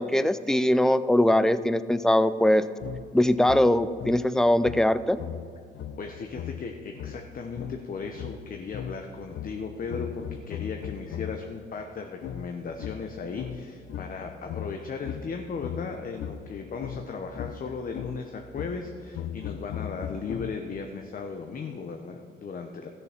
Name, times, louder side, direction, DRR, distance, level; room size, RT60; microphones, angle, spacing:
voice 1, 0.0-2.6 3.1-5.2, left 1 dB, 5° left, 14 dB, 0.4 m, -21 dB
sound 1, 2.8-11.6 12.2-20.9, left 8 dB, 70° left, 0.6 m, -39 dB
voice 2, 6.0-22.9, left 5 dB, 45° left, 4 dB, 0.9 m, -36 dB
13.5 x 6.7 x 5.8 m, 2.5 s
cardioid pair, 90°, 20 cm